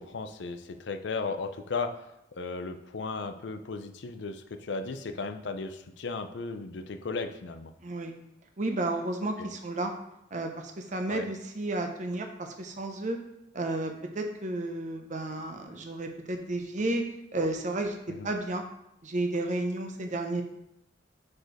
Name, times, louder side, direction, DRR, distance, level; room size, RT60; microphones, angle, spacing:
voice 1, 0.0-1.9 2.4-7.7 9.4-9.5 11.1-11.3 18.1-18.3, left 4 dB, 70° left, 8 dB, 0.5 m, -35 dB
voice 2, 7.8-8.1 8.6-9.9 10.3-13.2 13.5-17.0 17.3-18.0 18.2-18.6 19.0-20.4, right 2 dB, 40° right, 4 dB, 0.7 m, -32 dB
4.9 x 4.5 x 4.5 m, 0.82 s
head